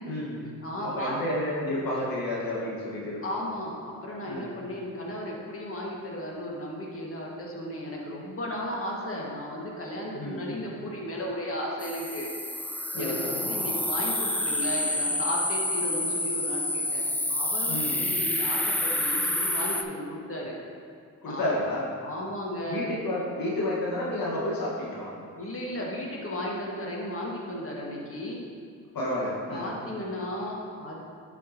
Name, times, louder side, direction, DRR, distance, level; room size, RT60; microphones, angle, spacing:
voice 1, 0.0-0.4 0.8-3.2 4.3-4.5 10.1-10.4 12.9-13.3 17.7-18.0 21.2-21.9 22.7-25.1 28.9-29.7, left 1 dB, 70° left, -6 dB, 1.5 m, -30 dB
voice 2, 0.6-1.2 3.2-12.3 12.7-17.0 17.3-20.6 21.3-21.6 22.0-22.9 25.4-28.4 29.5-31.0, left 1 dB, 40° left, -3 dB, 1.8 m, -35 dB
sound 1, 11.8-19.8, left 1 dB, 5° left, 0.5 m, -28 dB
10.5 x 5.0 x 2.9 m, 2.3 s
supercardioid pair, 55°, 35 cm